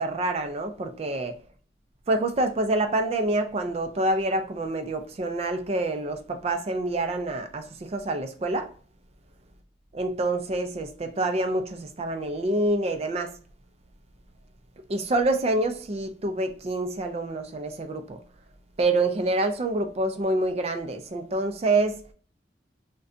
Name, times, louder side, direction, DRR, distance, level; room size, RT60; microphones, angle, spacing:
voice 1, 0.0-1.4 2.1-8.7 9.9-13.3 14.9-18.2 18.8-22.0, right 2 dB, 35° right, 0.4 m, -27 dB
3.8 x 2.2 x 2.4 m
head